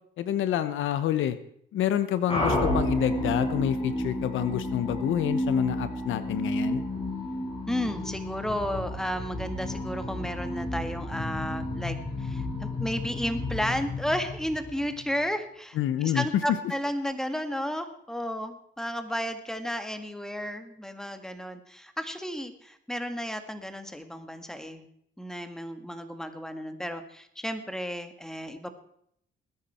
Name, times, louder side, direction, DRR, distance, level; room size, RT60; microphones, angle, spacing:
voice 1, 0.2-1.4 1.7-6.8 15.7-16.2, left 11 dB, 80° left, 12 dB, 1.1 m, -28 dB
sound 1, 2.3-15.1, left 1 dB, 30° left, 6.9 m, -31 dB
voice 2, 7.7-24.9 25.2-28.7, equal, 5° left, 8 dB, 1.8 m, -33 dB
20.5 x 9.7 x 4.4 m, 0.68 s
cardioid pair, 90°, 20 cm